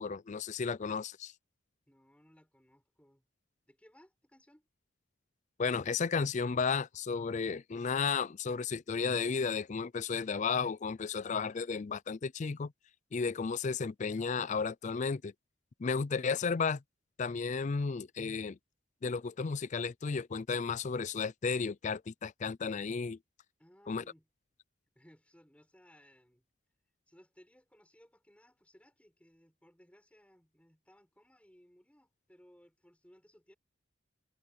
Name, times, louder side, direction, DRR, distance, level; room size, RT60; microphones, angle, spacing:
voice 1, 0.0-1.3 5.6-12.7 13.1-15.3 15.8-16.8 17.2-18.6 19.0-23.2 23.9-24.0, left 5 dB, 40° left, 0.4 m, -33 dB
voice 2, 1.9-3.3 3.7-4.7 23.6-24.3 25.0-26.4 27.1-33.6, equal, 5° left, 6.9 m, -62 dB
head